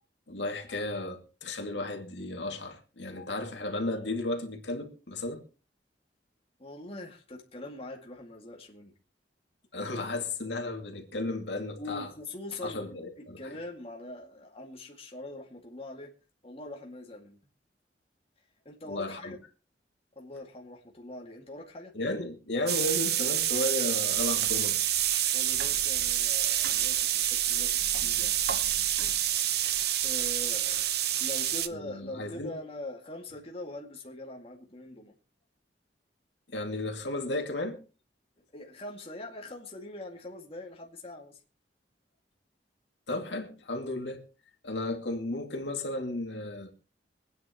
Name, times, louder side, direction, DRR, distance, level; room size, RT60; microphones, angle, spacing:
voice 1, 0.3-5.4 9.7-12.1 12.6-13.4 18.9-19.3 21.9-24.8 31.7-32.5 36.5-37.8 43.1-44.2 44.6-46.7, left 2 dB, 80° left, 2.3 m, -34 dB
voice 2, 6.6-8.9 11.8-16.1 16.4-17.4 18.7-19.4 20.2-21.9 25.3-28.4 28.8-28.9 30.0-35.1 38.5-41.4, left 2 dB, 35° left, 2.1 m, -43 dB
sound 1, 22.7-31.7, right 11 dB, 65° right, 0.8 m, -27 dB
25.0 x 9.5 x 2.9 m
head